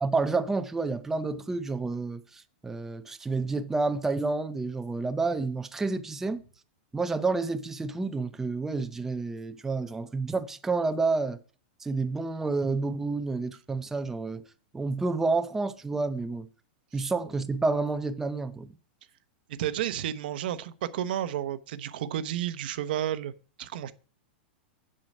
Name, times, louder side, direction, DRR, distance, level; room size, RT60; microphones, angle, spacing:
voice 1, 0.0-6.4 6.9-11.4 11.8-14.4 14.7-16.5 16.9-18.7, right 3 dB, 5° right, 0.5 m, -29 dB
voice 2, 19.5-23.3 23.6-23.9, right 11 dB, 65° right, 0.8 m, -31 dB
7.7 x 7.4 x 5.3 m
supercardioid pair, 145°, 5 cm